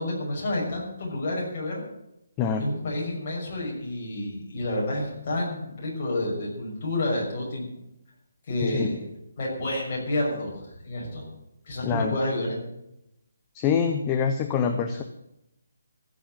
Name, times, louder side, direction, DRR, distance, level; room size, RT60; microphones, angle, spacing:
voice 1, 0.0-1.8 2.6-7.6 8.5-8.9 9.4-11.3 11.6-12.6, left 1 dB, 30° left, -4 dB, 6.3 m, -29 dB
voice 2, 2.4-2.7 8.6-8.9 11.8-12.2 13.5-15.0, left 6 dB, 15° left, 6 dB, 0.7 m, -25 dB
15.5 x 7.2 x 9.0 m, 0.84 s
hypercardioid pair, 175°, 0 cm